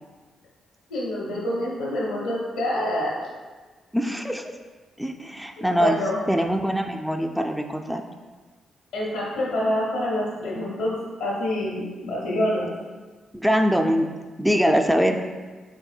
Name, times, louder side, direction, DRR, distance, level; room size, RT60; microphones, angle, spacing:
voice 1, 0.9-3.1 5.7-6.2 8.9-10.9 11.2-12.7, left 1 dB, 85° left, -4 dB, 1.1 m, -26 dB
voice 2, 3.9-4.4 5.0-6.0 6.3-8.0 13.3-14.1 14.4-15.2, equal, 5° right, 4 dB, 0.3 m, -23 dB
4.3 x 3.5 x 2.3 m, 1.3 s
hypercardioid pair, 45°, 0 cm